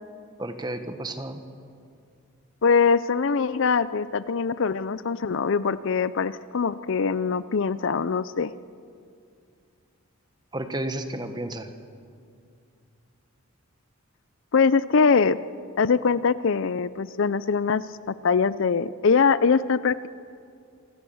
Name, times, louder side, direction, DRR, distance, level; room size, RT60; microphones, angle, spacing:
voice 1, 0.4-1.4 10.5-11.7, right 1 dB, 20° right, 8 dB, 1.3 m, -32 dB
voice 2, 2.6-8.5 14.5-15.4 15.8-17.8 18.1-20.1, left 5 dB, 60° left, 16 dB, 0.5 m, -22 dB
27.0 x 16.5 x 7.1 m, 2.4 s
head